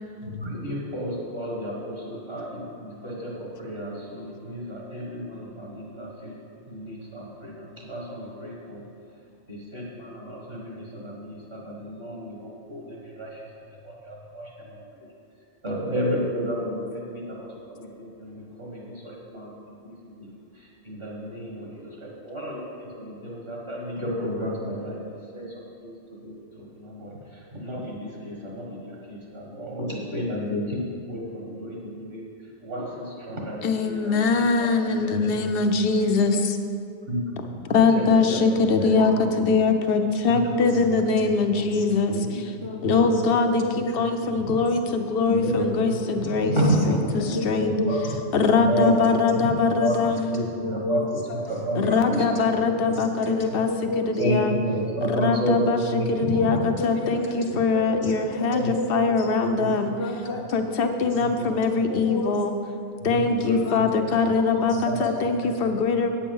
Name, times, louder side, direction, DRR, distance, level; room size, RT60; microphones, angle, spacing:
voice 1, 0.2-6.4 6.7-8.8 9.5-13.3 13.8-14.8 15.6-19.5 19.8-20.3 20.9-25.0 25.3-25.5 25.8-25.9 26.2-27.2 27.5-32.2 32.6-35.3 37.1-37.2 37.7-38.4 38.8-39.1 39.4-39.5 40.3-40.4 42.2-43.1 45.3-45.5 46.2-46.9 47.2-47.4 47.7-48.0 48.6-49.0 49.8-49.9 50.3-50.4 50.7-51.0 51.5-52.2 54.2-56.6 58.5-58.7 63.1-63.6 64.9-65.0, equal, 55° right, -3 dB, 1.9 m, -31 dB
voice 2, 33.6-36.6 37.7-42.5 42.8-46.6 46.8-47.7 48.3-50.2 51.7-53.7 54.0-54.6 55.0-59.9 60.5-62.5 63.0-66.1, left 4 dB, 60° left, 6 dB, 0.9 m, -23 dB
voice 3, 40.5-41.4 41.7-41.8 42.6-43.3 43.6-44.0 44.3-45.0 45.5-48.1 48.7-48.9 49.3-54.4 56.1-59.3 59.9-62.6 63.3-65.5 66.0-66.1, left 2 dB, 85° left, -3 dB, 1.6 m, -32 dB
8.6 x 8.4 x 5.4 m, 2.4 s
omnidirectional pair, 1.2 m